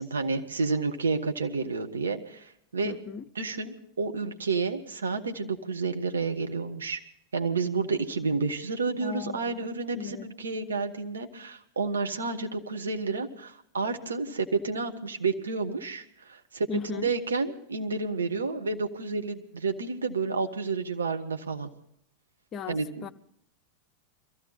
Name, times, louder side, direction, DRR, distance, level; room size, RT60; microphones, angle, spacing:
voice 1, 0.0-3.0 3.3-7.0 7.3-21.7 22.7-23.0, right 4 dB, 70° right, 1.3 m, -30 dB
voice 2, 2.8-3.3 9.0-9.6 9.9-10.3 16.7-17.1 22.5-23.1, left 5 dB, 30° left, 0.6 m, -37 dB
22.5 x 15.0 x 4.2 m
figure-of-eight pair, 90°, 0 cm